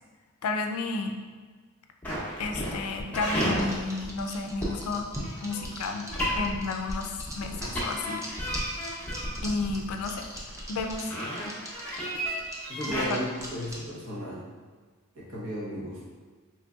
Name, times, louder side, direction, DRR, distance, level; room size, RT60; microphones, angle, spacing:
voice 1, 0.4-1.2 2.4-6.1 6.4-8.2 9.4-10.2 10.7-11.1 12.9-13.2, left 3 dB, 75° left, 4 dB, 0.4 m, -32 dB
sound 1, 2.0-13.0, equal, 5° left, 0.8 m, -32 dB
sound 2, 3.4-14.0, equal, 15° right, 0.4 m, -41 dB
voice 2, 12.6-14.4 15.1-16.0, equal, 60° right, -6 dB, 1.0 m, -35 dB
3.8 x 3.1 x 2.3 m, 1.5 s
head